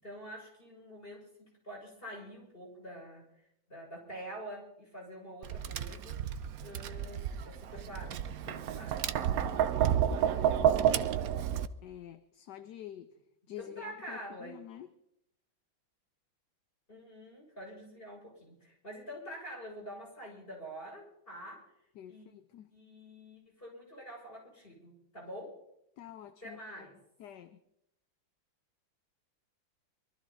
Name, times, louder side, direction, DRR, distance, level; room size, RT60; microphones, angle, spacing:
voice 1, 0.0-3.2 3.7-6.2 6.6-9.7 10.1-10.9 13.6-14.6 16.9-21.7 22.1-22.3 22.7-25.6 26.4-26.9, equal, 25° left, 6.9 m, -47 dB
Tap, 5.4-11.7, right 9 dB, 65° right, 0.9 m, -30 dB
voice 2, 10.5-11.3 11.8-13.1 13.5-14.9 21.9-22.7 26.0-26.9 27.2-27.6, left 11 dB, 65° left, 1.3 m, -48 dB
23.5 x 14.0 x 4.1 m
omnidirectional pair, 2.2 m